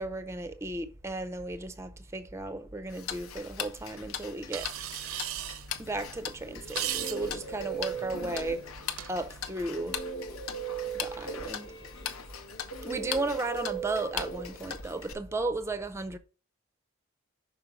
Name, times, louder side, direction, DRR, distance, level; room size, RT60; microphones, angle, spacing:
voice 1, 0.0-4.7 5.0-5.1 5.8-8.7 9.1-10.0 10.9-11.7 12.8-16.2, right 2 dB, 15° right, 0.4 m, -35 dB
Tick-tock, 2.9-15.1, left 8 dB, 85° left, 0.8 m, -40 dB
sound 1, 4.5-9.5, right 12 dB, 85° right, 0.5 m, -39 dB
Guitar, 6.5-9.0 9.8-15.2, right 6 dB, 50° left, 0.9 m, -39 dB
5.9 x 4.4 x 5.0 m
head